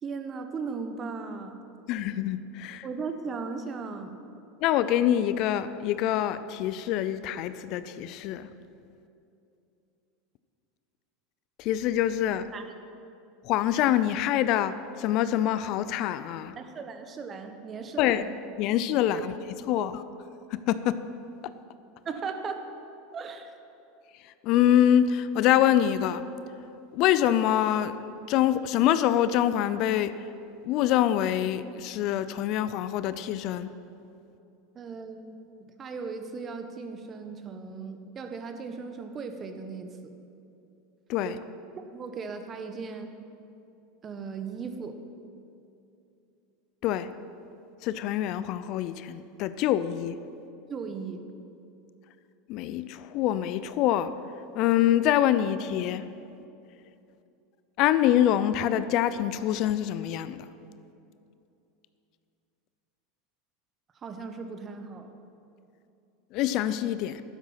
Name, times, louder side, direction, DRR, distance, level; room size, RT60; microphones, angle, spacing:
voice 1, 0.0-1.6 2.8-4.2 12.5-12.6 16.6-18.3 19.1-19.2 19.8-19.9 22.0-22.6 23.1-23.5 34.7-35.5 35.8-39.9 41.2-41.4 41.9-43.1 44.0-45.0 50.7-51.2 64.0-65.1, right 5 dB, 35° right, 7 dB, 1.3 m, -37 dB
voice 2, 1.9-2.9 4.6-8.5 11.6-12.5 13.4-16.5 18.0-18.2 18.6-19.4 19.7-20.0 20.5-21.0 24.4-26.2 26.9-27.9 28.3-30.1 30.6-33.7 41.1-41.4 46.8-47.1 47.8-50.2 52.5-54.1 54.5-56.0 57.8-60.5 66.3-67.2, left 11 dB, 55° left, 14 dB, 0.5 m, -25 dB
12.0 x 9.6 x 5.7 m, 2.7 s
hypercardioid pair, 90°, 0 cm